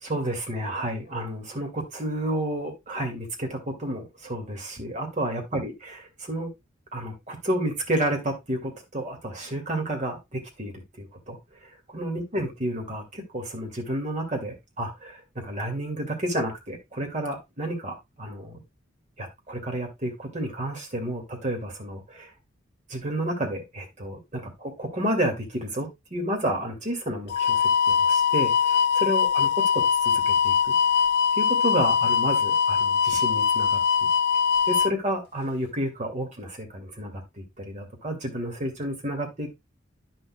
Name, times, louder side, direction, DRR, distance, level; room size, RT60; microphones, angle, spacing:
voice 1, 0.0-6.5 6.9-10.7 11.0-18.6 19.2-22.3 22.9-30.7 31.4-34.1 34.7-39.5, right 1 dB, 40° right, 2 dB, 2.3 m, -31 dB
sound 1, 27.3-34.9, left 7 dB, 55° left, 0.4 m, -22 dB
9.8 x 6.4 x 2.3 m, 0.21 s
head